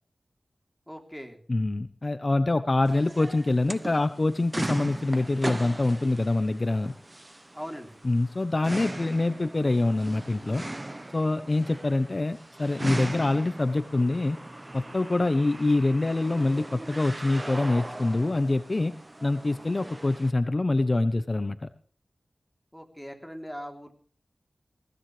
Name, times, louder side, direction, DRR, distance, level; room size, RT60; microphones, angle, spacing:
voice 1, 0.9-1.4 7.5-8.0 22.7-23.9, equal, ahead, 4 dB, 3.4 m, -40 dB
voice 2, 1.5-6.9 8.0-10.6 11.1-14.4 14.7-18.9 19.2-21.7, left 2 dB, 40° left, 12 dB, 0.8 m, -25 dB
sound 1, 2.9-20.3, right 1 dB, 25° right, 0.9 m, -39 dB
22.5 x 16.0 x 3.3 m, 0.43 s
wide cardioid pair, 70°, 0 cm